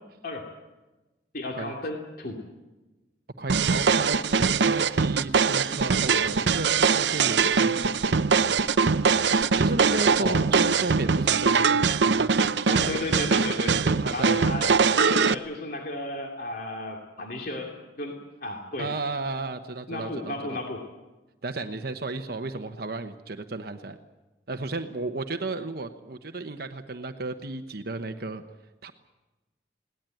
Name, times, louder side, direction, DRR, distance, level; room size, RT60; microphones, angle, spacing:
voice 1, 1.3-2.4 10.2-10.4 12.7-13.7 14.1-18.9 19.9-20.8, left 2 dB, 55° left, 1 dB, 2.6 m, -34 dB
voice 2, 3.4-8.2 9.5-12.3 12.7-13.0 13.7-14.4 18.8-20.6 21.4-24.0 24.5-28.4 28.8-28.9, right 3 dB, 55° right, 7 dB, 1.0 m, -33 dB
sound 1, 3.5-15.3, right 5 dB, 80° right, 0.7 m, -22 dB
21.0 x 18.0 x 9.1 m, 1.1 s
head